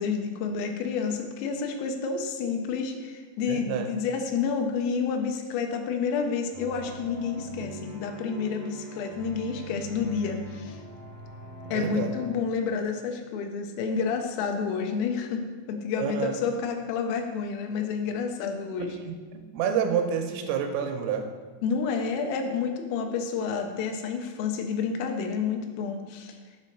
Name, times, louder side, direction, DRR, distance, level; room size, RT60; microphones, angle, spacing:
voice 1, 0.0-10.8 11.7-19.0 21.6-26.4, left 5 dB, 85° left, 4 dB, 3.3 m, -29 dB
voice 2, 3.5-3.9 11.7-12.1 16.0-16.3 18.8-19.1 19.5-21.2, right 7 dB, 85° right, 5 dB, 3.1 m, -28 dB
sound 1, 6.5-12.3, right 2 dB, 65° left, 1.5 m, -42 dB
7.9 x 3.0 x 5.7 m, 1.5 s
omnidirectional pair, 5.8 m